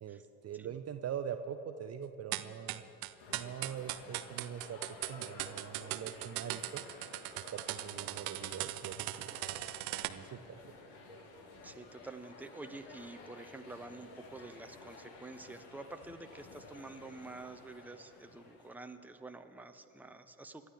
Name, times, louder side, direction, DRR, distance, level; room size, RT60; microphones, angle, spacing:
voice 1, 0.0-2.8 3.3-6.8 7.3-9.6 10.1-10.6, right 8 dB, 35° right, 7 dB, 0.8 m, -43 dB
sound 1, 2.3-10.1, right 18 dB, 65° right, 0.8 m, -39 dB
Town Hall Ambience, 3.2-18.8, left 3 dB, 60° left, 2.0 m, -53 dB
voice 2, 11.6-20.7, right 2 dB, 5° right, 7 dB, 1.0 m, -48 dB
28.5 x 12.5 x 3.6 m, 2.8 s
figure-of-eight pair, 60°, 47 cm